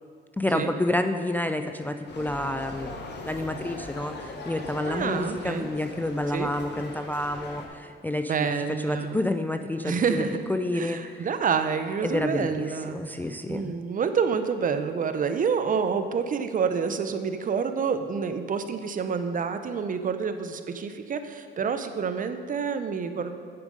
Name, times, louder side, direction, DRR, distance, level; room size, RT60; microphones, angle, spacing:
voice 1, 0.4-11.3 12.0-13.8, left 1 dB, 10° left, 7 dB, 0.3 m, -29 dB
sound 1, 2.1-7.7, left 3 dB, 60° left, 1.2 m, -40 dB
voice 2, 4.9-5.7 6.3-6.5 8.3-9.2 9.8-10.4 10.7-13.0 13.5-23.4, right 6 dB, 45° right, 9 dB, 0.6 m, -28 dB
9.6 x 5.2 x 5.1 m, 2.1 s
cardioid pair, 90°, 20 cm